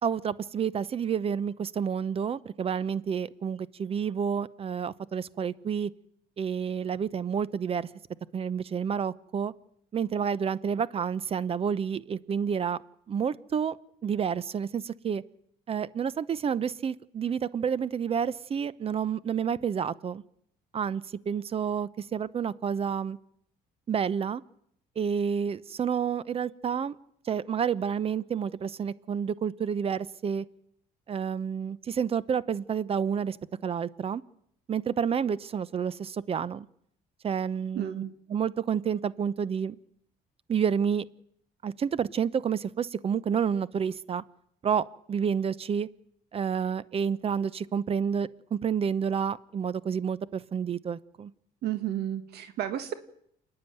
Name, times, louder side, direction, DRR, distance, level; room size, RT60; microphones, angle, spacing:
voice 1, 0.0-5.9 6.4-7.9 8.3-9.5 9.9-12.8 13.1-13.8 14.0-15.2 15.7-20.2 20.7-23.2 23.9-24.4 25.0-26.9 27.2-30.4 31.1-33.4 33.6-34.2 34.7-36.7 37.2-38.0 38.3-39.8 40.5-41.0 41.6-44.2 44.6-45.9 46.3-51.3, right 7 dB, 35° right, 19 dB, 0.8 m, -29 dB
voice 2, 37.7-38.1 51.6-52.9, right 11 dB, 75° right, 9 dB, 1.6 m, -32 dB
28.5 x 9.9 x 9.2 m, 0.71 s
cardioid pair, 110°, 17 cm